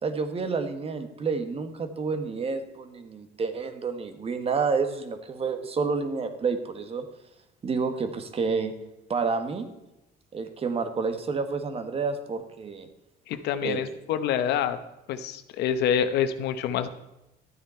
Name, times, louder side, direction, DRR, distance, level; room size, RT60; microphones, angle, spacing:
voice 1, 0.0-7.1 7.6-8.7 9.1-9.7 10.3-12.9 13.6-13.8, right 5 dB, 35° right, 8 dB, 1.4 m, -29 dB
voice 2, 13.3-14.8 15.1-16.9, left 8 dB, 80° left, 10 dB, 1.0 m, -26 dB
12.5 x 9.0 x 4.4 m, 0.93 s
cardioid pair, 110°, 17 cm